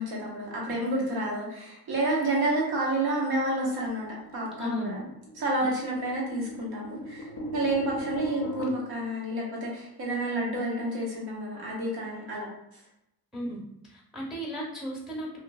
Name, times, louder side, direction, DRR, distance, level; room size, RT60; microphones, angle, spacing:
voice 1, 0.0-4.1 4.3-5.0 5.3-12.5 12.7-12.8, right 1 dB, 80° right, -4 dB, 1.0 m, -29 dB
sound 1, 4.0-8.7, equal, 35° left, 0.5 m, -38 dB
voice 2, 4.6-5.0 13.3-13.6 13.9-15.4, equal, ahead, -3 dB, 0.7 m, -35 dB
2.7 x 2.5 x 2.3 m, 0.83 s
cardioid pair, 95°, 37 cm